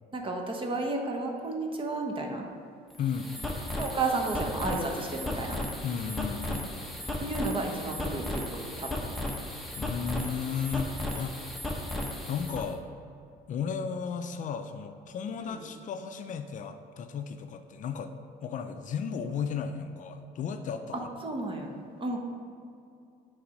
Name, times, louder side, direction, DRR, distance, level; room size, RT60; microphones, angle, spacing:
voice 1, 0.1-2.5 3.8-5.6 7.2-8.5 8.8-8.9 21.2-22.2, right 2 dB, 30° right, 2 dB, 1.0 m, -32 dB
sound 1, 2.9-12.7, left 1 dB, ahead, 0.9 m, -35 dB
voice 2, 3.0-3.3 5.8-6.7 9.8-11.5 12.3-12.8 13.5-18.1 18.4-21.3, left 6 dB, 50° left, 7 dB, 0.4 m, -34 dB
8.0 x 3.5 x 5.2 m, 2.5 s
cardioid pair, 110°, 17 cm